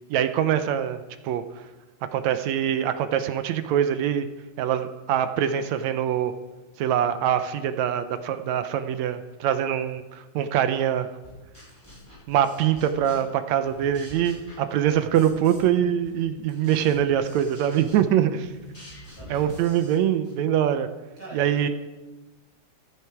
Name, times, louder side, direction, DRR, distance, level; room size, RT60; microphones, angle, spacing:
voice 1, 0.1-1.4 2.1-4.3 4.6-6.3 6.8-11.1 12.3-18.5 19.3-20.9 21.3-21.7, right 10 dB, 75° right, 9 dB, 1.9 m, -24 dB
sound 1, 11.2-13.4 13.6-15.8 16.0-20.4, equal, 10° left, 5.3 m, -45 dB
voice 2, 19.1-19.5 21.2-21.7, right 1 dB, 30° right, -4 dB, 5.6 m, -43 dB
15.5 x 11.5 x 4.7 m, 1.2 s
omnidirectional pair, 3.4 m